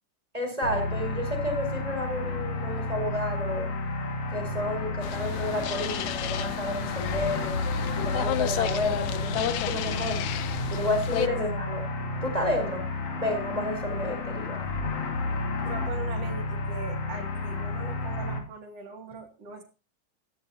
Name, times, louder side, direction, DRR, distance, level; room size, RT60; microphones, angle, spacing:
voice 1, 0.3-3.7 4.3-7.6 8.0-10.2 10.7-11.8 12.2-12.8 13.1-14.6, left 1 dB, 10° right, 3 dB, 4.3 m, -31 dB
sound 1, 0.6-18.4, left 2 dB, 55° left, 3.1 m, -31 dB
sound 2, 5.0-11.3, left 12 dB, 75° left, 2.1 m, -32 dB
voice 2, 15.6-19.6, right 4 dB, 55° right, 3 dB, 3.5 m, -40 dB
17.0 x 14.5 x 2.9 m, 0.32 s
omnidirectional pair, 3.4 m